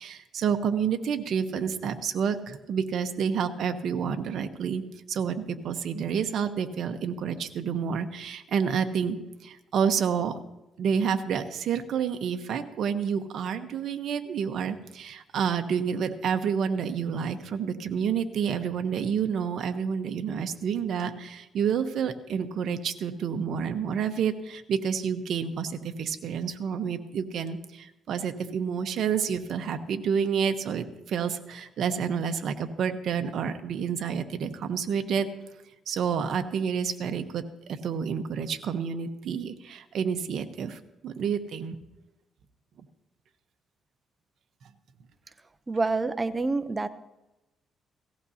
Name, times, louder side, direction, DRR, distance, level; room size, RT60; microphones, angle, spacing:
voice 1, 0.0-4.8 5.1-9.2 9.4-10.3 10.8-35.3 35.9-41.8, right 7 dB, 65° right, 7 dB, 0.9 m, -29 dB
voice 2, 45.7-46.9, right 3 dB, 25° right, 13 dB, 0.6 m, -27 dB
17.5 x 15.0 x 2.8 m, 0.96 s
cardioid pair, 90°, 0 cm